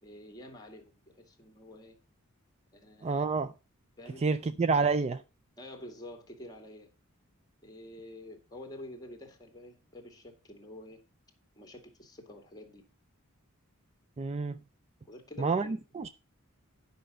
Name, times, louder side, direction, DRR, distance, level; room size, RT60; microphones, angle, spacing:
voice 1, 0.0-2.0 2.7-3.3 4.0-4.5 5.6-6.9 7.6-11.0 11.5-12.8 15.1-15.8, left 1 dB, 20° left, 2.1 m, -48 dB
voice 2, 3.0-3.5 4.2-5.2 14.2-14.6 15.4-16.1, right 4 dB, 30° right, 0.4 m, -28 dB
10.0 x 5.8 x 5.3 m
head